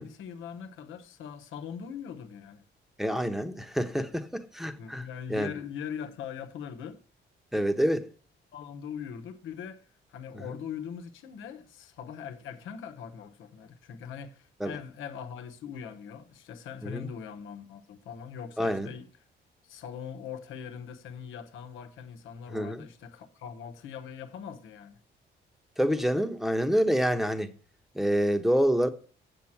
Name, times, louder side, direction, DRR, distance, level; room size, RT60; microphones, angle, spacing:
voice 1, 0.0-2.6 4.8-7.0 8.5-19.1 19.6-25.0, left 7 dB, 85° left, 1.1 m, -41 dB
voice 2, 3.0-5.0 5.3-5.5 7.5-8.1 14.6-14.8 16.8-17.1 18.6-18.9 22.5-22.8 25.8-27.5 27.9-28.9, equal, ahead, 1.0 m, -27 dB
7.5 x 7.2 x 5.9 m
cardioid pair, 90°, 20 cm